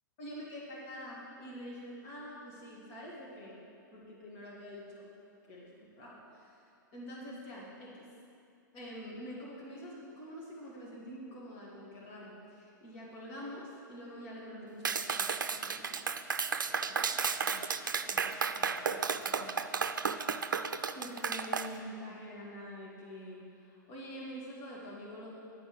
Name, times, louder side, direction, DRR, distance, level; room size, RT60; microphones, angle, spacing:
voice 1, 0.2-3.6 3.9-5.1 5.5-6.6 6.9-8.0 8.7-16.2 16.7-19.6 21.0-25.3, equal, 45° left, -5 dB, 2.3 m, -46 dB
Clapping, 14.8-21.7, right 5 dB, 75° right, 0.5 m, -33 dB
11.0 x 5.5 x 7.8 m, 2.5 s
figure-of-eight pair, 100°, 11 cm